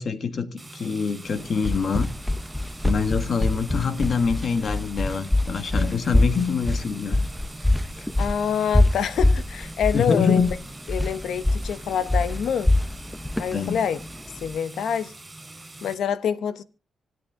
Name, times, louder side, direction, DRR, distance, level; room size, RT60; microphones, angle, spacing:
voice 1, 0.0-2.1 2.8-7.2 8.0-8.1 9.9-10.5 13.5-13.8, left 5 dB, 55° left, 1.8 m, -25 dB
sound 1, 0.6-15.9, right 2 dB, 20° right, 5.1 m, -43 dB
sound 2, 1.3-14.6, left 1 dB, 5° left, 0.7 m, -24 dB
voice 2, 8.2-10.4 10.9-12.7 13.4-14.0 14.4-15.1 15.8-16.6, left 8 dB, 80° left, 1.0 m, -26 dB
25.5 x 8.7 x 3.7 m
cardioid pair, 105°, 0 cm